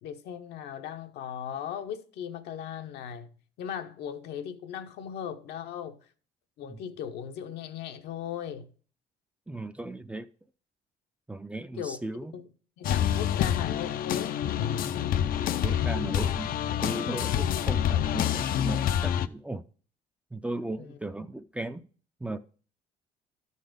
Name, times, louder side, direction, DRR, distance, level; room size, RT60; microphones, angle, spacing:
voice 1, 0.0-6.0 6.6-8.7 11.8-12.0 12.3-12.5 12.8-14.4 20.8-21.0, left 9 dB, 80° left, 0.9 m, -38 dB
voice 2, 9.5-10.3 11.3-12.3 15.6-19.6 20.3-21.9 22.2-22.4, right 2 dB, 5° right, 0.4 m, -36 dB
sound 1, 12.8-19.3, left 10 dB, 60° left, 0.5 m, -27 dB
12.0 x 4.1 x 5.1 m
cardioid pair, 110°, 17 cm